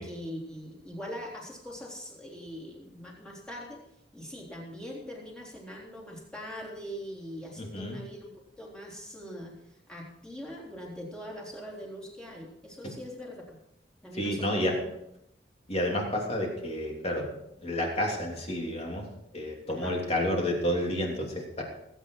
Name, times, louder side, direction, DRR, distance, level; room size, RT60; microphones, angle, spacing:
voice 1, 0.0-3.8 4.1-8.3 8.6-13.6 14.0-14.7 19.7-20.1, equal, 5° left, -4 dB, 3.6 m, -42 dB
voice 2, 7.6-8.0 12.8-12.9 14.2-14.7 15.7-17.3 17.6-19.0 19.3-21.6, left 1 dB, 35° left, 0 dB, 3.1 m, -30 dB
19.0 x 9.3 x 4.7 m, 0.80 s
head